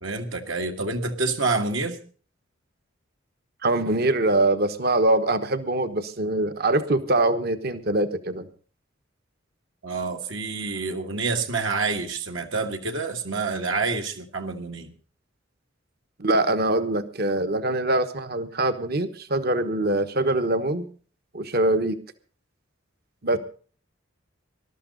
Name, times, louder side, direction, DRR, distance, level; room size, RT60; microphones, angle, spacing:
voice 1, 0.0-2.0 9.8-14.9 23.3-23.4, right 3 dB, 70° right, 3 dB, 1.7 m, -28 dB
voice 2, 3.6-8.5 16.2-20.9 21.3-22.0 23.2-23.4, right 2 dB, 50° right, 11 dB, 1.2 m, -23 dB
20.5 x 12.5 x 3.9 m, 0.40 s
head